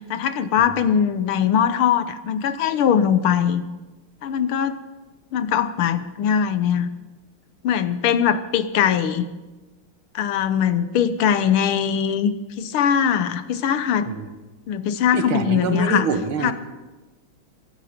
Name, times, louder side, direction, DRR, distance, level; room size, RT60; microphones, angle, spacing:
voice 1, 0.0-3.6 4.2-4.8 5.3-6.9 7.6-9.3 10.2-12.3 12.6-14.1 14.7-16.1 16.4-16.5, left 8 dB, 85° left, 12 dB, 1.8 m, -21 dB
voice 2, 15.1-16.5, right 5 dB, 75° right, 8 dB, 2.0 m, -25 dB
22.0 x 12.5 x 5.1 m, 1.2 s
omnidirectional pair, 2.3 m